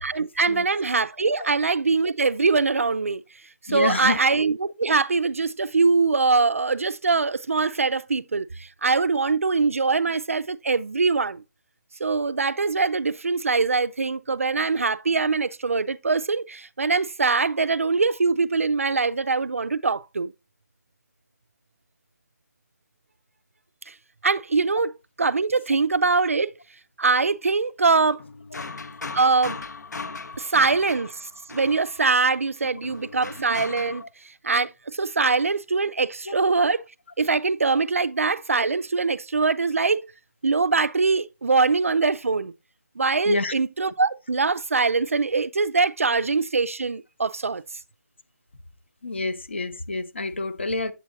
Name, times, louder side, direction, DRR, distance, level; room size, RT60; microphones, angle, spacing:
voice 1, 0.0-3.2 3.6-11.4 12.0-20.3 23.9-24.0 24.2-24.9 25.2-26.5 27.0-28.2 29.1-29.6 30.4-34.0 34.4-36.9 37.2-40.1 40.4-42.5 43.0-47.6, right 4 dB, 50° right, 0.3 m, -23 dB
voice 2, 3.7-4.2 28.5-28.6 36.3-36.4 43.3-43.5 49.0-50.9, left 2 dB, 40° left, 0.7 m, -28 dB
sound 1, 28.2-32.3 32.8-34.0, left 4 dB, 80° left, 0.9 m, -38 dB
8.0 x 7.4 x 2.6 m
hypercardioid pair, 180°, 9 cm